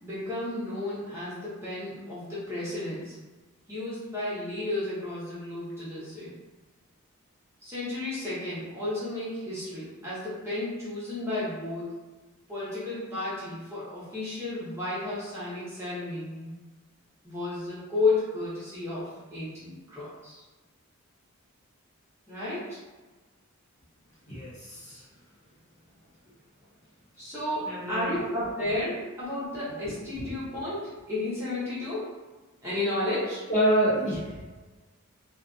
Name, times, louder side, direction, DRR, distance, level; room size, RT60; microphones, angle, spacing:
voice 1, 0.0-3.2 3.7-6.3 7.6-12.0 12.5-16.5 17.2-20.4 22.3-22.8 27.2-32.1 32.6-33.5, left 2 dB, 10° right, -10 dB, 0.8 m, -32 dB
voice 2, 24.3-25.0 27.7-28.2 29.9-30.3 33.5-34.4, right 1 dB, 35° left, -8 dB, 0.7 m, -27 dB
2.5 x 2.3 x 2.5 m, 1.2 s
head